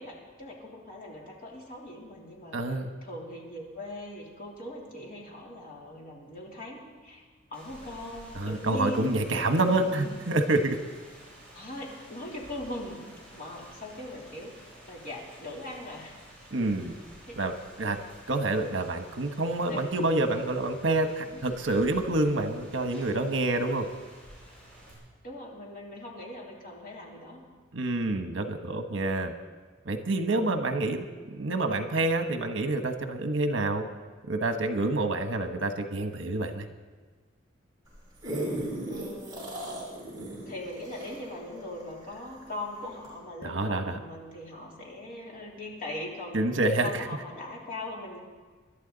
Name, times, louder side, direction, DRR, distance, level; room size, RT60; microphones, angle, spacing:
voice 1, 0.0-7.2 7.5-9.1 9.6-10.1 11.5-13.0 13.3-16.2 17.2-17.3 19.7-19.8 21.3-21.4 25.2-27.4 38.9-39.8 40.5-46.4 46.8-48.2, left 1 dB, 45° left, -3 dB, 3.4 m, -40 dB
voice 2, 2.5-2.9 8.3-10.8 16.5-16.9 17.4-17.5 17.8-18.0 18.3-23.9 27.7-29.3 29.9-33.9 34.3-36.7 43.4-43.9 46.3-47.1, right 2 dB, 70° right, 6 dB, 1.2 m, -27 dB
Rain, 7.5-24.9, right 1 dB, 5° left, 6.3 m, -51 dB
sound 1, 37.9-42.5 43.0-43.1, right 1 dB, 20° right, 6.0 m, -36 dB
26.0 x 12.0 x 4.0 m, 1.4 s
head